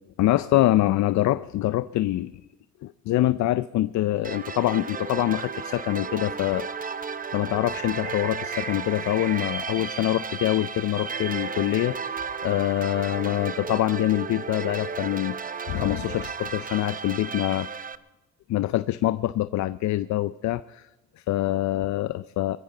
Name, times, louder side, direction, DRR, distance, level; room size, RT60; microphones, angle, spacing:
voice 1, 0.2-2.4 2.8-6.7 7.3-12.2 12.4-17.7 18.5-20.9 21.2-22.6, left 15 dB, 70° left, 14 dB, 0.5 m, -25 dB
sound 1, 4.2-18.0, right 5 dB, 30° right, 0.7 m, -34 dB
22.0 x 15.0 x 3.9 m, 1.1 s
cardioid pair, 90°, 30 cm